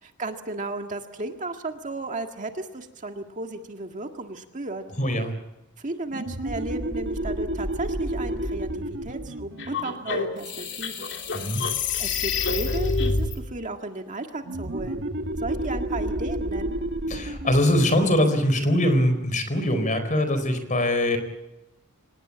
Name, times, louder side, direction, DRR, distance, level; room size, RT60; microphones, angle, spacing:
voice 1, 0.0-4.8 5.8-11.2 12.0-15.1 15.4-16.8, right 2 dB, 35° right, 4 dB, 1.9 m, -34 dB
voice 2, 5.0-5.3 11.3-11.6 17.1-21.2, left 1 dB, 35° left, 9 dB, 4.3 m, -22 dB
sound 1, 6.1-11.4 14.4-19.7, right 1 dB, 55° right, 2.0 m, -32 dB
sound 2, 9.6-13.3, left 4 dB, 55° left, 3.1 m, -27 dB
26.0 x 20.0 x 8.6 m, 0.98 s
head